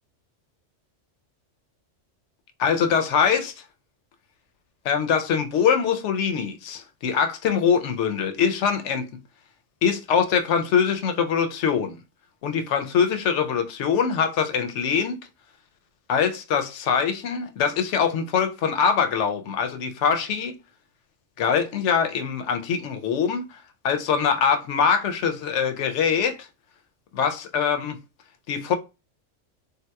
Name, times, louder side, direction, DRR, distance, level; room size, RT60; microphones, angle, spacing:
voice 1, 2.6-3.5 4.8-9.1 9.8-12.0 12.4-15.3 16.1-20.6 21.4-26.5 27.1-28.0 28.5-28.7, left 7 dB, 75° left, 0.9 m, -23 dB
3.5 x 2.8 x 2.2 m
omnidirectional pair, 1.3 m